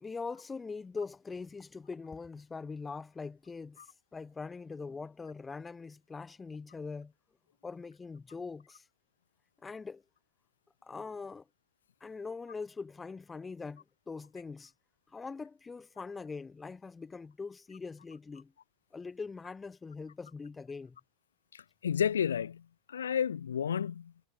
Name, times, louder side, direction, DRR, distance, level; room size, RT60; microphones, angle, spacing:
voice 1, 0.0-3.8 4.1-7.1 7.6-8.8 9.6-10.0 10.8-11.5 12.0-14.7 15.1-18.5 18.9-21.0, left 4 dB, 20° left, 1.0 m, -42 dB
voice 2, 21.5-24.1, left 8 dB, 85° left, 0.5 m, -32 dB
hypercardioid pair, 90°, 0 cm